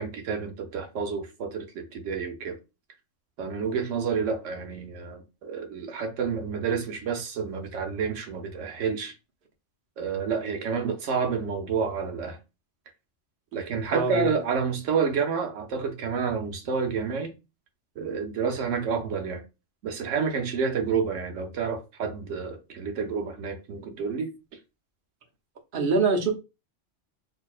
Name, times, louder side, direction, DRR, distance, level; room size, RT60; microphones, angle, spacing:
voice 1, 0.0-2.6 3.4-9.1 10.0-12.4 13.5-17.3 18.0-19.4 19.8-24.3, right 6 dB, 90° right, 1.1 m, -29 dB
voice 2, 13.9-14.3 25.7-26.3, right 3 dB, 50° right, 1.0 m, -23 dB
4.4 x 2.8 x 2.4 m
omnidirectional pair, 1.2 m